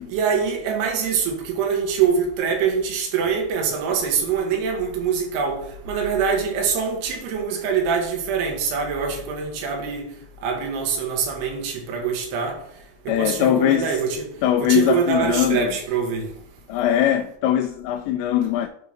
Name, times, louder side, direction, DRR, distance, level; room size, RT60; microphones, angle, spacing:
voice 1, 0.1-10.1 10.4-12.6 13.1-14.3 14.6-16.3, right 6 dB, 70° right, 3.3 m, -24 dB
voice 2, 13.1-14.0 14.4-15.7 16.7-18.7, left 11 dB, 85° left, 2.7 m, -21 dB
9.4 x 3.4 x 5.7 m
omnidirectional pair, 5.1 m